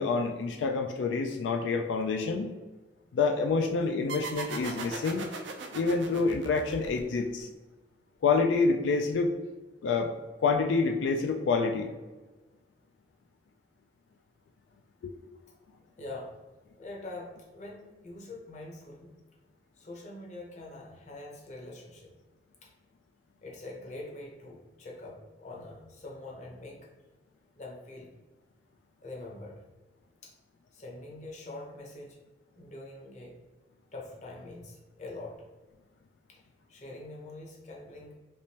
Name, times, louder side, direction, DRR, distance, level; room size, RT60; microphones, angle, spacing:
voice 1, 0.0-2.5 3.1-5.3 5.7-7.5 8.2-9.3 9.8-10.1 10.4-11.9 15.0-15.1, left 4 dB, 85° left, 4 dB, 0.3 m, -27 dB
sound 1, 4.1-7.4, right 4 dB, 85° right, 0.4 m, -39 dB
voice 2, 16.0-16.3 16.8-19.1 19.8-22.1 22.6-22.7 23.4-26.8 27.6-28.1 29.0-29.7 30.2-30.3 30.7-32.2 32.6-33.4 33.9-35.4 36.3-36.4 36.7-38.1, left 2 dB, 40° left, -1 dB, 0.7 m, -44 dB
3.4 x 3.0 x 2.8 m, 1.2 s
head